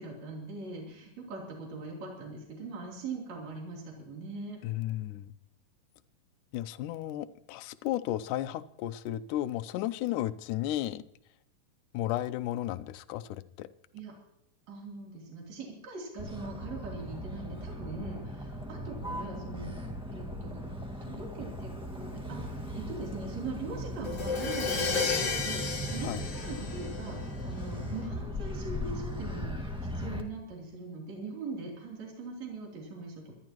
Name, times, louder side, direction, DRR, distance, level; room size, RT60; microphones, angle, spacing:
voice 1, 0.0-4.6 13.9-14.1 14.7-19.7 20.1-20.6 21.0-33.3, right 3 dB, 55° right, -2 dB, 4.4 m, -41 dB
voice 2, 4.6-5.3 6.5-11.0 11.9-13.7 26.0-26.2, left 13 dB, 75° left, 13 dB, 2.1 m, -34 dB
Motor vehicle (road), 16.2-30.2, equal, 5° right, 0.9 m, -38 dB
Crash cymbal, 24.0-27.8, left 4 dB, 35° left, 1.2 m, -33 dB
25.5 x 12.0 x 3.0 m, 0.80 s
omnidirectional pair, 3.9 m